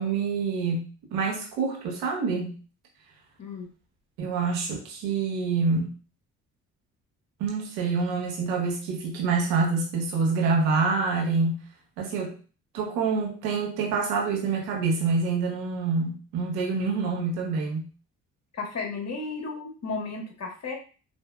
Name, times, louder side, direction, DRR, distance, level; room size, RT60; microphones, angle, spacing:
voice 1, 0.0-2.6 4.2-5.9 7.4-11.6 12.0-12.3 12.7-17.9, right 4 dB, 80° right, -1 dB, 1.2 m, -26 dB
voice 2, 18.5-20.8, left 4 dB, 45° left, 1 dB, 1.3 m, -34 dB
4.2 x 2.6 x 2.3 m, 0.36 s
hypercardioid pair, 50°, 37 cm